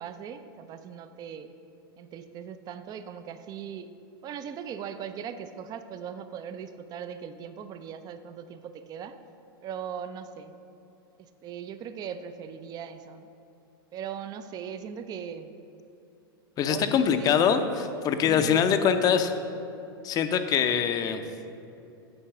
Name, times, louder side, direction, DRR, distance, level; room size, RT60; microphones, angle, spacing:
voice 1, 0.0-1.5 2.0-3.9 4.2-9.2 9.6-10.5 11.2-13.3 13.9-15.5 16.6-17.3 18.2-18.6, right 8 dB, 30° right, 10 dB, 0.5 m, -39 dB
voice 2, 16.6-19.3 20.0-21.2, left 7 dB, 30° left, 8 dB, 0.6 m, -23 dB
8.9 x 4.5 x 6.0 m, 2.8 s
hypercardioid pair, 115°, 13 cm